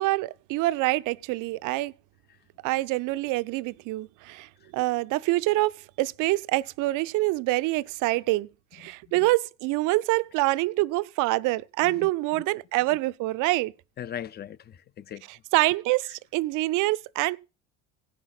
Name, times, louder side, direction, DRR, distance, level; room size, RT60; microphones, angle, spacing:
voice 1, 0.0-1.9 2.6-13.7 15.5-17.4, right 20 dB, 60° right, 0.4 m, -26 dB
voice 2, 11.8-12.5 14.0-15.3, left 10 dB, 30° left, 0.5 m, -40 dB
17.0 x 5.9 x 3.9 m
hypercardioid pair, 70°, 36 cm